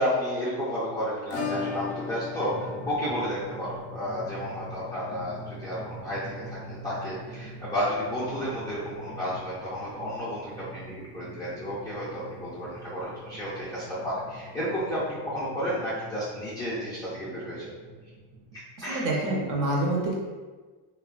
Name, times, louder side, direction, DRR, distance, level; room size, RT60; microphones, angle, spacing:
voice 1, 0.0-17.7 18.8-19.1, equal, 10° left, -11 dB, 0.3 m, -32 dB
Acoustic guitar / Strum, 1.3-9.9 10.2-10.3 10.5-10.6 11.0-11.1 13.2-13.3 14.4-14.5, left 4 dB, 60° left, 0.6 m, -40 dB
Drum, 2.4-18.6, right 1 dB, 85° right, 0.7 m, -44 dB
voice 2, 18.8-20.1, right 1 dB, 40° right, -3 dB, 0.6 m, -27 dB
3.2 x 2.2 x 2.3 m, 1.3 s
cardioid pair, 155°, 49 cm